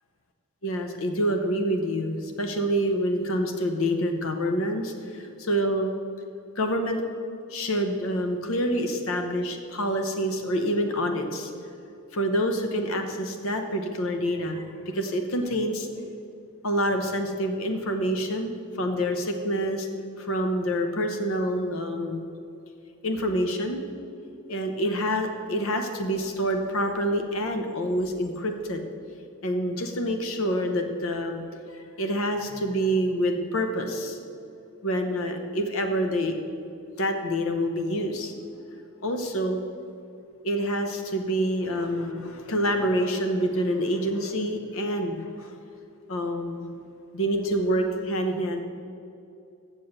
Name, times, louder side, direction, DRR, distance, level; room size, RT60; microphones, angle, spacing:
voice 1, 0.6-5.9 6.6-7.0 7.5-11.5 12.1-15.9 16.6-19.9 20.2-22.2 23.0-23.8 24.5-28.8 29.4-31.4 31.7-34.2 34.8-36.6 37.0-38.3 39.0-39.6 40.4-45.5 46.1-46.7 47.1-48.6, equal, 65° left, 5 dB, 0.9 m, -27 dB
7.7 x 7.2 x 6.6 m, 2.5 s
head